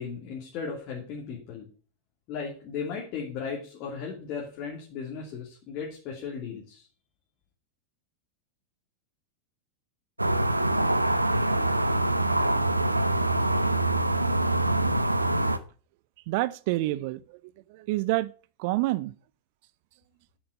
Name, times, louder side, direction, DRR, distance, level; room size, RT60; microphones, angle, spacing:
voice 1, 0.0-1.7 2.3-6.9, left 6 dB, 40° left, 2.8 m, -36 dB
sound 1, 10.2-15.6, right 1 dB, 85° right, 0.7 m, -24 dB
voice 2, 16.3-17.4 17.7-18.3 18.6-19.1, right 18 dB, 50° right, 0.5 m, -28 dB
7.9 x 7.8 x 6.6 m
figure-of-eight pair, 90°, 0 cm